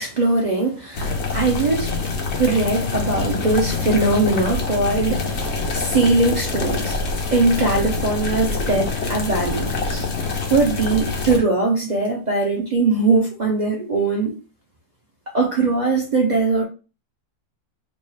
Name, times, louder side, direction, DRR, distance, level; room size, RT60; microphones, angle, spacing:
voice 1, 0.0-7.0 7.3-10.1 10.5-14.3 15.3-16.6, right 3 dB, 50° right, 0.5 m, -21 dB
sound 1, 0.9-11.4, left 4 dB, 55° left, 0.9 m, -25 dB
3.2 x 2.3 x 4.4 m
omnidirectional pair, 1.7 m